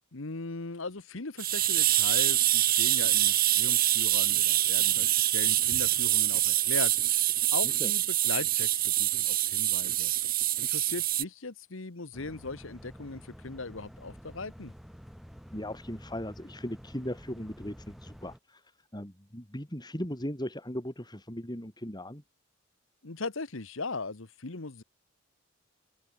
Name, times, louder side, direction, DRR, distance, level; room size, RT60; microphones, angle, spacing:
voice 1, 0.1-7.2 7.5-10.1 10.6-14.7 23.0-24.8, left 3 dB, 65° left, 1.3 m, -39 dB
sound 1, 1.4-11.2, right 14 dB, 45° right, 1.2 m, -25 dB
sound 2, 12.1-18.4, equal, ahead, 3.2 m, -49 dB
voice 2, 15.5-18.6 18.9-22.2, left 1 dB, 20° left, 4.8 m, -38 dB
open air
head